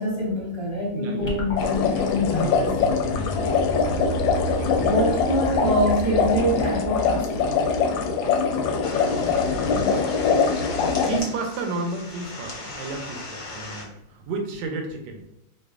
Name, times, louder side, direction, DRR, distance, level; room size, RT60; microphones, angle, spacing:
voice 1, 0.0-2.8 3.4-3.6 4.8-7.4, equal, 45° right, -8 dB, 0.3 m, -25 dB
voice 2, 0.9-1.6 1.9-2.2 3.0-3.4 4.5-5.0 9.0-9.5 11.0-15.2, right 3 dB, 70° right, 3 dB, 1.3 m, -33 dB
sound 1, 1.3-7.8, equal, 20° left, 0.8 m, -32 dB
sound 2, 1.6-11.2, left 5 dB, 75° left, 1.2 m, -23 dB
sound 3, 8.8-13.8, left 3 dB, 60° left, 0.9 m, -36 dB
4.6 x 2.4 x 2.4 m, 0.86 s
omnidirectional pair, 2.2 m